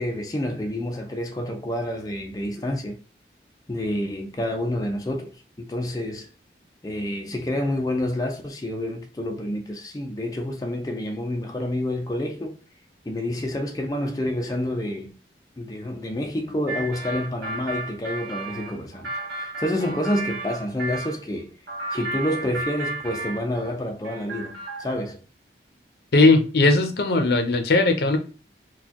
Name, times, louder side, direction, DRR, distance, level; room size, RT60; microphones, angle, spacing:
voice 1, 0.0-3.0 3.7-6.3 6.8-12.6 13.1-15.1 15.6-21.6 21.9-25.2, left 1 dB, 20° left, 0.4 m, -28 dB
sound 1, 16.7-21.1 21.7-23.8 24.0-25.0, right 2 dB, 75° right, 1.6 m, -33 dB
voice 2, 26.1-28.2, left 2 dB, 65° left, 0.6 m, -18 dB
4.0 x 2.3 x 2.9 m
head